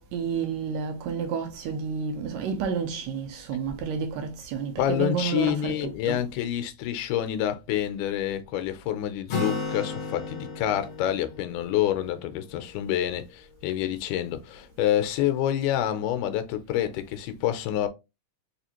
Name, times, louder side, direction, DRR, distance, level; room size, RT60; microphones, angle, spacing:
voice 1, 0.0-6.2, right 6 dB, 80° right, 1.7 m, -30 dB
voice 2, 4.8-17.9, left 11 dB, 90° left, 2.1 m, -27 dB
Acoustic guitar, 9.3-13.0, left 4 dB, 60° left, 1.9 m, -34 dB
4.9 x 2.4 x 2.9 m
omnidirectional pair, 3.5 m